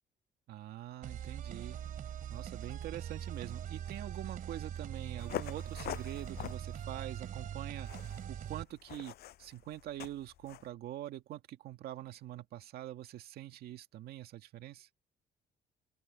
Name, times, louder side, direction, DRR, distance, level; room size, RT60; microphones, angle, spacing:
voice 1, 0.5-1.8 2.3-7.9 8.3-14.9, right 13 dB, 80° right, 2.0 m, -44 dB
sound 1, 1.0-8.6, right 9 dB, 60° right, 2.6 m, -42 dB
sound 2, 5.2-10.7, left 13 dB, 75° left, 7.8 m, -45 dB
open air
cardioid pair, 105°, 16 cm